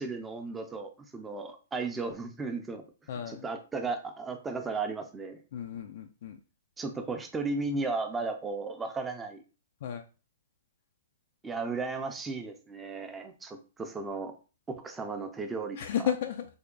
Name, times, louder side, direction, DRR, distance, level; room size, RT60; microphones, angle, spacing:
voice 1, 0.0-2.9 3.1-5.4 6.8-9.4 11.4-14.4 14.7-16.1, right 3 dB, 10° right, 6 dB, 0.5 m, -35 dB
voice 2, 3.1-3.4 5.5-6.4 9.8-10.0 15.8-16.5, left 9 dB, 60° left, 6 dB, 0.4 m, -33 dB
3.4 x 2.1 x 3.8 m, 0.33 s
hypercardioid pair, 135°, 0 cm